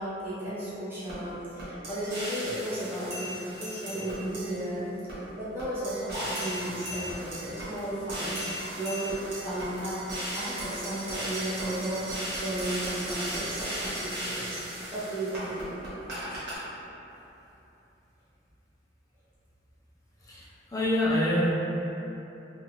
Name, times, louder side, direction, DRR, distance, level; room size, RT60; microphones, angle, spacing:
voice 1, 0.0-4.9 5.3-8.5 8.8-10.0 10.3-14.6 14.9-15.6, right 1 dB, 10° right, -13 dB, 0.9 m, -34 dB
sound 1, 1.1-1.2 1.6-4.7 5.1-5.2 5.6-16.5, right 1 dB, 60° right, 0.8 m, -36 dB
voice 2, 20.3-21.5, left 1 dB, 20° left, -7 dB, 0.4 m, -26 dB
2.7 x 2.3 x 2.8 m, 3.0 s
head